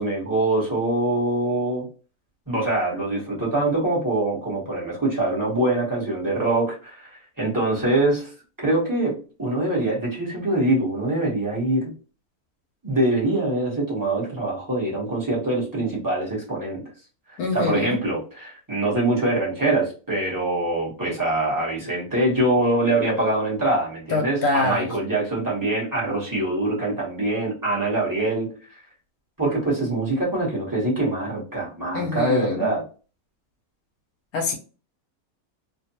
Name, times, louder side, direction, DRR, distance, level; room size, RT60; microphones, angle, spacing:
voice 1, 0.0-1.8 2.5-7.1 7.4-8.3 8.6-11.9 12.8-16.8 17.3-28.5 29.4-32.8, right 2 dB, 15° right, 0.9 m, -24 dB
voice 2, 17.4-18.0 24.1-24.9 31.9-32.7 34.3-34.6, left 3 dB, 85° left, 1.1 m, -24 dB
2.6 x 2.2 x 2.7 m
omnidirectional pair, 1.6 m